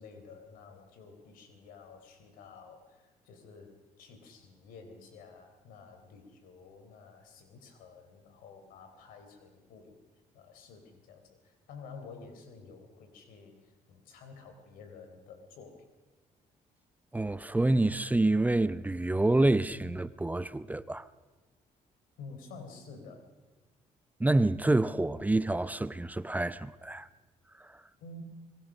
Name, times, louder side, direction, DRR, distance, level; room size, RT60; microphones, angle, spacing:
voice 1, 0.0-10.0 10.3-15.8 22.2-23.3 28.0-28.2, left 4 dB, 85° left, 4.0 m, -51 dB
voice 2, 17.1-21.1 24.2-27.1 27.6-27.8, right 2 dB, 10° right, 0.7 m, -27 dB
25.5 x 21.0 x 6.4 m
cardioid pair, 90°, 14 cm